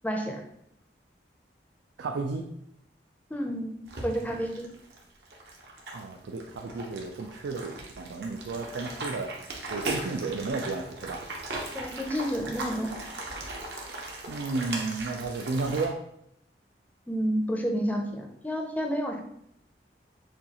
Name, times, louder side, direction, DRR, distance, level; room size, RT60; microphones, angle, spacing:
voice 1, 0.0-0.4 3.3-4.7 11.7-13.0 17.1-19.2, equal, 10° left, 2 dB, 0.5 m, -30 dB
voice 2, 2.0-2.4 5.9-9.3 9.7-11.2 13.8-16.0, right 3 dB, 90° right, 4 dB, 0.4 m, -33 dB
sound 1, 3.9-15.9, right 2 dB, 70° right, 0.9 m, -38 dB
6.5 x 2.3 x 2.9 m, 0.76 s
head